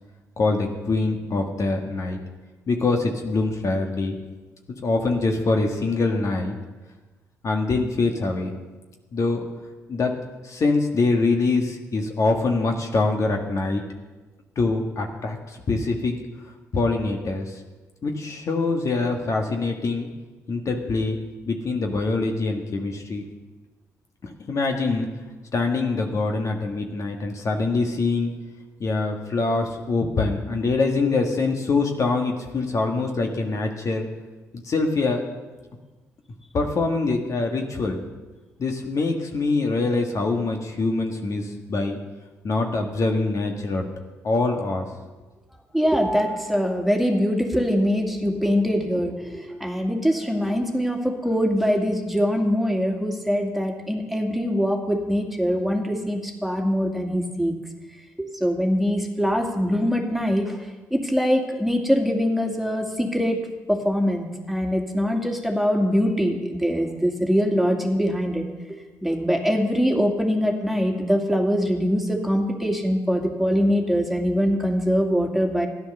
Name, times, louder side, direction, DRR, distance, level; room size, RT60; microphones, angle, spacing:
voice 1, 0.4-2.2 2.7-4.2 4.8-6.5 7.4-8.5 9.1-9.4 9.9-10.1 10.4-13.8 14.5-16.2 16.7-17.6 18.0-20.1 20.5-21.2 21.5-23.3 24.5-25.1 25.5-28.3 28.8-34.1 34.5-35.2 36.5-38.0 38.6-42.0 42.4-43.8 44.2-44.9, left 3 dB, 50° left, 2 dB, 1.6 m, -24 dB
voice 2, 45.7-57.5 58.4-60.6 60.9-63.4 63.7-68.4 69.0-75.7, equal, ahead, 2 dB, 2.3 m, -23 dB
13.0 x 10.0 x 6.7 m, 1.2 s
supercardioid pair, 60°, 7 cm